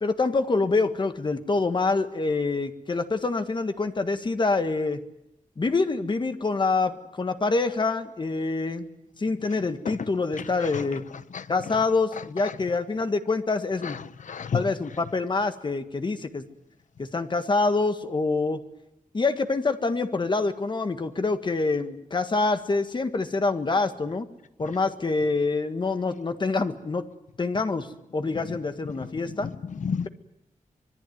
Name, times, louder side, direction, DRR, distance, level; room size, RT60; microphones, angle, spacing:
voice 1, 0.0-5.0 5.6-8.9 9.2-11.0 11.5-14.0 14.5-16.4 17.0-18.6 19.1-24.3 24.6-27.0 27.4-27.9 28.1-29.5, left 3 dB, 35° left, 1.6 m, -26 dB
voice 2, 13.8-14.6 29.4-30.1, left 6 dB, 65° left, 1.0 m, -31 dB
25.5 x 21.0 x 9.4 m
wide cardioid pair, 170°, 14 cm